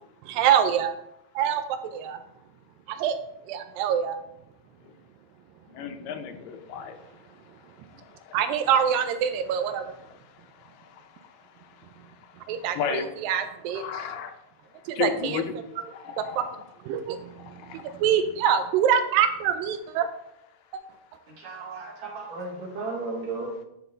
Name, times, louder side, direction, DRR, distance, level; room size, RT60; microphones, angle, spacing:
voice 1, 0.3-0.9 1.4-2.2 2.9-3.2 3.5-4.2 8.3-9.8 12.5-13.8 14.9-15.4 16.2-16.4 16.9-17.5 18.0-20.1 20.7-20.8, right 8 dB, 80° right, 9 dB, 2.2 m, -25 dB
voice 2, 5.7-7.0 8.3-8.4 9.8-10.0 12.7-13.2 13.7-14.3 14.9-15.5 15.9-16.6 17.4-17.8, left 8 dB, 80° left, 6 dB, 2.2 m, -33 dB
voice 3, 21.3-23.6, right 3 dB, 60° right, 0 dB, 2.1 m, -34 dB
11.0 x 3.8 x 3.9 m, 0.79 s
omnidirectional pair, 4.1 m